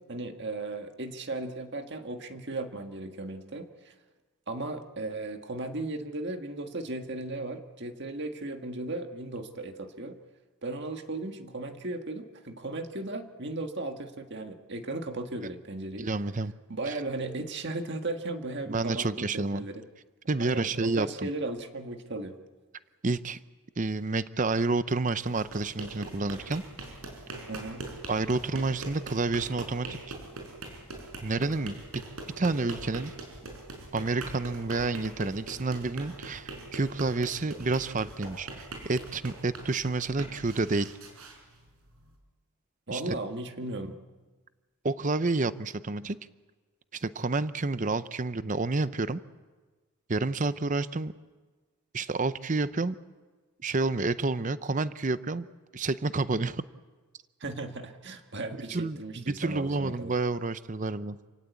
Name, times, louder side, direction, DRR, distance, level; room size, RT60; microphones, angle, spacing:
voice 1, 0.0-3.9 4.5-10.2 10.6-16.1 16.7-19.8 20.4-22.4 27.5-27.9 42.9-44.0 57.4-60.1, right 2 dB, 50° right, 6 dB, 1.8 m, -36 dB
voice 2, 16.0-16.5 16.9-17.0 18.7-19.7 20.3-21.3 23.0-23.4 23.8-26.6 28.1-30.1 31.2-32.0 32.4-33.1 33.9-40.9 42.9-43.1 44.8-46.2 46.9-49.2 50.1-51.1 51.9-53.0 53.6-55.5 55.7-56.6 58.7-61.2, right 3 dB, 35° right, 14 dB, 0.6 m, -29 dB
sound 1, 25.1-42.1, right 2 dB, 75° right, 5.2 m, -42 dB
27.5 x 18.0 x 8.4 m, 1.3 s
head